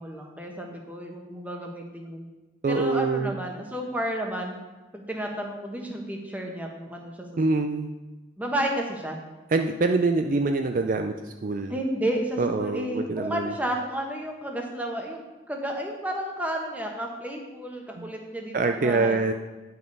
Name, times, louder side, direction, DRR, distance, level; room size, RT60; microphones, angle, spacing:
voice 1, 0.0-2.3 2.7-4.5 4.9-7.3 7.6-7.8 8.4-9.2 11.7-19.2, right 1 dB, 10° right, 1 dB, 1.1 m, -32 dB
voice 2, 2.6-3.3 7.4-7.9 9.5-11.7 12.4-13.5 18.0-18.1 18.5-19.3, right 3 dB, 45° right, 5 dB, 0.4 m, -25 dB
10.0 x 5.5 x 5.3 m, 1.2 s
head